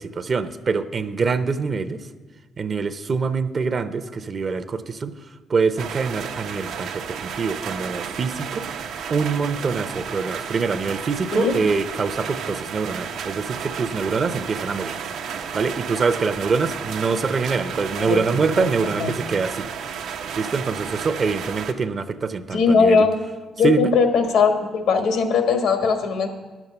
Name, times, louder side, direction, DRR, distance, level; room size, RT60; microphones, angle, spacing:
voice 1, 0.0-2.1 2.6-5.1 5.5-8.7 9.1-15.0 15.5-19.7 20.4-23.1 23.6-23.9, right 4 dB, 40° right, 11 dB, 0.6 m, -24 dB
sound 1, 5.8-21.7, right 7 dB, 85° right, 0.7 m, -32 dB
voice 2, 22.5-23.1 23.6-26.3, left 5 dB, 85° left, 6 dB, 1.4 m, -19 dB
10.5 x 7.2 x 6.7 m, 1.3 s
cardioid pair, 90°, 0 cm